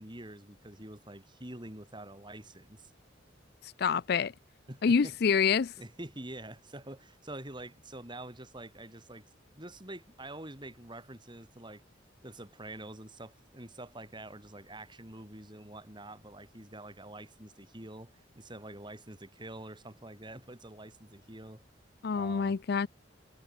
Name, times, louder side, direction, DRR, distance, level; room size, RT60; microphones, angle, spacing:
voice 1, 0.0-2.9 4.7-5.1 5.8-9.2 9.6-11.8 12.2-21.6 22.1-22.6, right 1 dB, 25° right, 5.6 m, -46 dB
voice 2, 3.6-4.3 4.8-5.7 22.0-22.9, left 6 dB, 55° left, 0.4 m, -27 dB
head